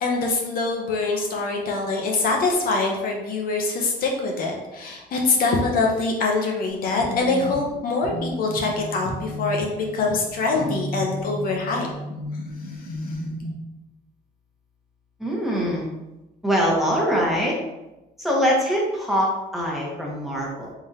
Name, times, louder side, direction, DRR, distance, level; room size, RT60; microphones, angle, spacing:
voice 1, 0.0-11.9, left 3 dB, 60° left, 0 dB, 0.8 m, -24 dB
sound 1, 6.7-13.5, equal, 85° right, 1.1 m, -33 dB
voice 2, 15.2-15.9 16.4-17.6 18.2-20.7, equal, ahead, -4 dB, 1.1 m, -23 dB
3.8 x 3.4 x 2.8 m, 0.99 s
cardioid pair, 110°, 17 cm